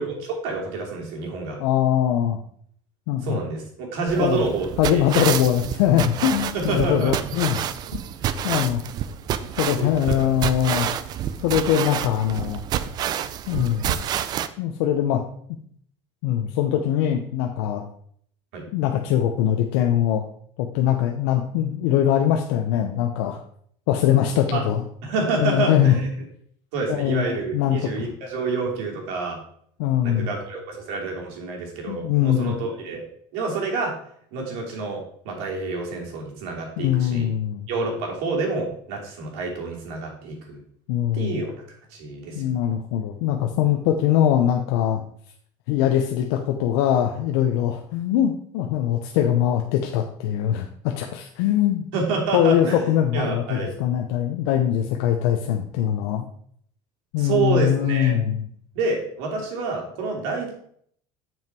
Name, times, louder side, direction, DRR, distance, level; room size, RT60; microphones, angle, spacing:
voice 1, 0.0-1.6 3.2-5.3 6.5-7.1 8.3-8.5 9.8-10.4 18.5-18.6 24.5-24.6 25.0-26.1 26.7-29.4 30.0-33.1 33.3-33.9 34.3-37.3 37.7-40.6 41.1-41.5 41.9-42.6 51.9-53.7 57.2-58.2 58.7-60.5, right 3 dB, 70° right, 0 dB, 2.7 m, -28 dB
voice 2, 1.6-2.4 3.1-3.4 4.2-4.4 4.8-7.6 7.9-8.0 8.4-8.8 9.6-10.9 11.4-12.6 13.5-14.0 14.6-15.2 16.2-17.9 18.7-20.2 20.6-23.4 23.9-24.8 25.4-26.0 26.9-28.1 29.8-30.3 31.9-32.6 36.8-37.7 40.9-41.4 42.3-45.0 45.7-51.9 52.3-56.2 57.1-58.5, left 10 dB, 85° left, 3 dB, 0.8 m, -22 dB
sound 1, 4.1-14.5, right 10 dB, 35° right, 0.4 m, -28 dB
7.3 x 5.9 x 4.5 m, 0.63 s
cardioid pair, 165°, 12 cm